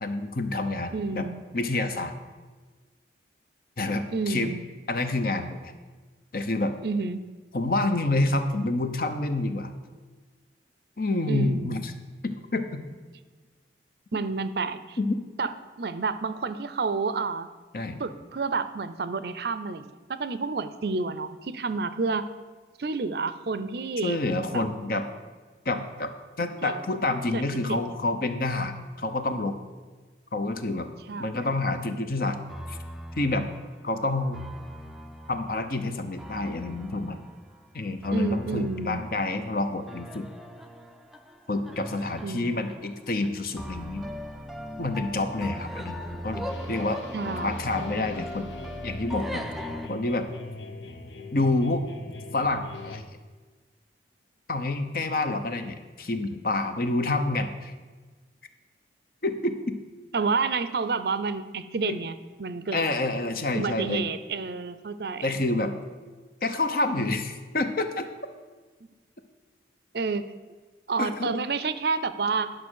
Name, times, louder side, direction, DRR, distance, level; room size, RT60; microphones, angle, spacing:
voice 1, 0.0-1.3 1.5-2.1 3.8-4.5 4.9-5.7 6.3-6.8 7.5-9.7 11.0-11.9 12.2-12.8 15.0-15.1 17.7-18.0 24.0-25.1 25.6-26.1 26.4-29.6 30.3-30.9 31.2-32.4 32.7-32.8 33.1-33.5 33.8-34.4 35.3-37.2 37.7-40.3 41.5-44.1 44.8-47.0 47.4-48.5 48.8-49.4 49.9-50.3 51.3-51.8 52.3-53.0 54.5-57.7 59.2-59.7 61.8-62.0 62.7-64.0 65.2-65.7 66.4-68.1 71.0-71.3, left 2 dB, 50° left, 8 dB, 0.8 m, -28 dB
voice 2, 0.9-1.4 4.1-4.7 6.8-7.3 11.3-11.8 14.1-15.0 15.4-15.5 15.8-17.5 18.0-22.3 22.8-24.2 24.5-24.6 26.6-26.8 27.3-27.4 27.7-28.0 31.1-31.6 38.1-39.0 42.2-42.6 47.1-47.8 60.1-62.9 63.5-65.4 69.9-70.2 70.9-72.5, right 4 dB, 60° right, 13 dB, 0.5 m, -30 dB
sound 1, 32.5-49.9, equal, ahead, 0.5 m, -39 dB
sound 2, 46.5-53.0, left 2 dB, 85° left, 0.9 m, -42 dB
11.0 x 6.2 x 6.3 m, 1.4 s
head